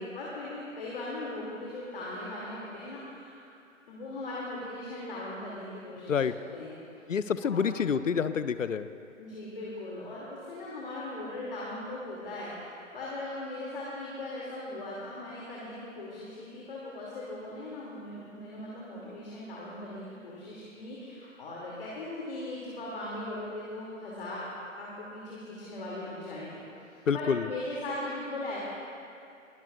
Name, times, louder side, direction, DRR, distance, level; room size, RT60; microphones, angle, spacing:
voice 1, 0.0-3.4 3.9-6.8 7.4-7.7 9.2-24.4 24.8-26.6 26.9-28.6, left 1 dB, 45° left, -6 dB, 2.6 m, -39 dB
voice 2, 7.1-8.9 27.1-27.5, left 6 dB, 70° left, 13 dB, 0.6 m, -27 dB
22.0 x 13.0 x 2.4 m, 2.6 s
figure-of-eight pair, 135°, 40 cm